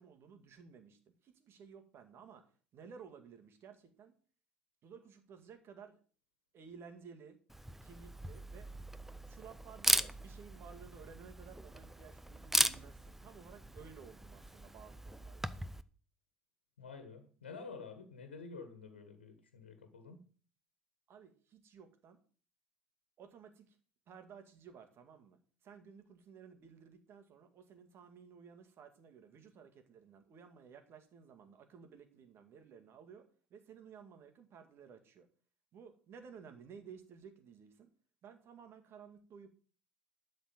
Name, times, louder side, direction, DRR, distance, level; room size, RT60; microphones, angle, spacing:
voice 1, 0.0-2.4 2.7-4.1 4.8-6.0 6.5-7.4 7.8-8.7 9.2-15.6 21.1-22.2 23.2-23.8 24.1-35.3 35.7-37.9 38.2-39.5, right 6 dB, 45° right, 7 dB, 2.1 m, -55 dB
Camera, 7.5-15.8, right 1 dB, 5° right, 0.7 m, -38 dB
voice 2, 16.8-20.2, left 4 dB, 80° left, 7 dB, 1.6 m, -49 dB
12.0 x 4.4 x 7.5 m, 0.41 s
figure-of-eight pair, 65°, 6 cm